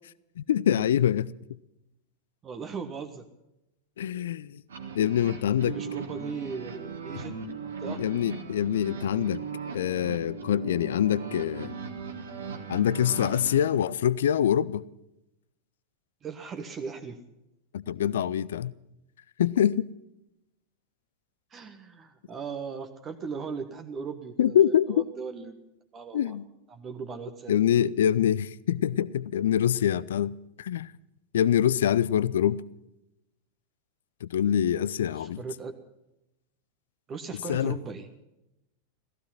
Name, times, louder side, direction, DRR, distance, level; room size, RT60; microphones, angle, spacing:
voice 1, 0.4-1.3 4.0-4.6 4.9-5.8 7.9-9.4 9.7-11.7 12.7-14.8 17.7-18.7 19.4-19.9 24.4-25.0 26.1-26.5 27.5-30.9 31.3-32.6 34.2-35.4 37.5-37.8, left 10 dB, 60° left, 0.5 m, -25 dB
voice 2, 2.4-3.2 5.6-7.4 7.6-8.0 16.2-17.2 21.5-25.6 25.9-26.4 26.7-27.6 35.2-35.7 37.1-38.1, right 5 dB, 25° right, 1.4 m, -38 dB
sound 1, 4.7-13.7, right 5 dB, 65° right, 2.0 m, -38 dB
16.0 x 15.0 x 5.8 m
figure-of-eight pair, 90°, 0 cm